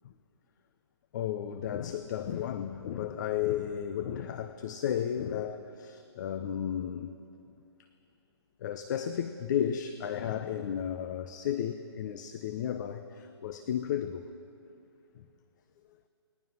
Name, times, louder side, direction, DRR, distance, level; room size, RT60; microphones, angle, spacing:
voice 1, 1.1-7.1 8.6-14.3 15.1-15.2, left 9 dB, 40° left, 9 dB, 0.9 m, -33 dB
29.0 x 20.5 x 5.9 m, 2.6 s
hypercardioid pair, 140°, 14 cm